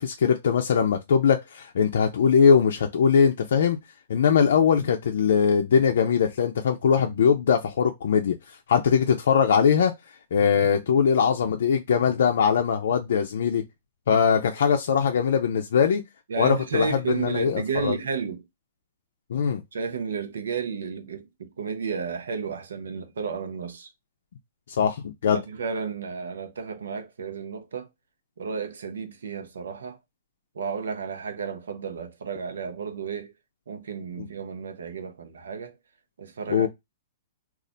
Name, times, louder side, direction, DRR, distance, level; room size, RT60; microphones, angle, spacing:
voice 1, 0.0-3.8 4.1-8.4 8.7-9.9 10.3-13.6 14.1-16.0 16.4-18.0 19.3-19.6 24.7-25.4 34.2-34.3 36.5-36.7, left 7 dB, 75° left, 0.4 m, -21 dB
voice 2, 16.3-18.4 19.7-23.9 25.3-27.9 28.4-30.0 30.5-33.4 33.7-35.8 36.2-36.7, right 6 dB, 90° right, 0.7 m, -32 dB
2.4 x 2.1 x 3.7 m
hypercardioid pair, 155°, 0 cm